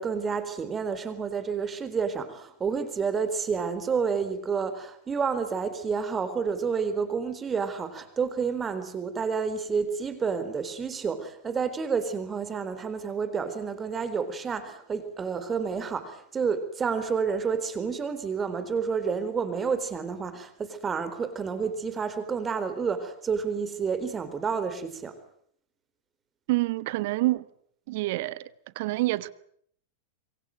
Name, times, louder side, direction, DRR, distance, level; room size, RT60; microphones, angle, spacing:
voice 1, 0.0-25.2, right 5 dB, 20° right, 4.1 m, -29 dB
voice 2, 26.5-27.5 27.9-28.5 28.7-29.3, right 19 dB, 50° right, 1.2 m, -27 dB
27.0 x 24.0 x 7.9 m
figure-of-eight pair, 90°, 0 cm